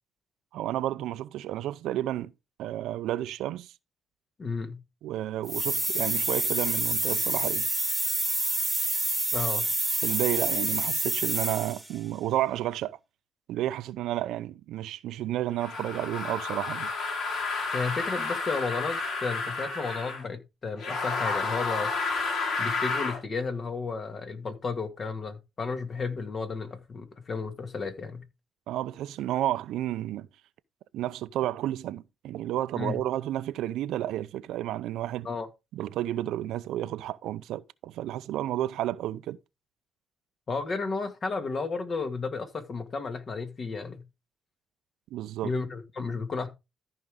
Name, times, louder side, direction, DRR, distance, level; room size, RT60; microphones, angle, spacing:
voice 1, 0.5-2.3 2.6-3.7 5.0-7.7 10.0-13.0 13.5-16.9 28.7-30.3 30.9-35.3 35.7-39.4 45.1-45.5, right 13 dB, 85° right, 0.5 m, -31 dB
voice 2, 4.4-4.8 9.3-9.7 17.7-21.9 22.6-28.2 32.8-33.0 35.2-35.5 40.5-44.0 45.4-46.5, left 4 dB, 45° left, 1.9 m, -33 dB
sound 1, 5.5-11.9, right 2 dB, 10° right, 1.5 m, -28 dB
sound 2, 15.6-20.2 20.8-23.2, left 4 dB, 70° left, 4.5 m, -31 dB
14.0 x 5.2 x 3.6 m
cardioid pair, 90°, 0 cm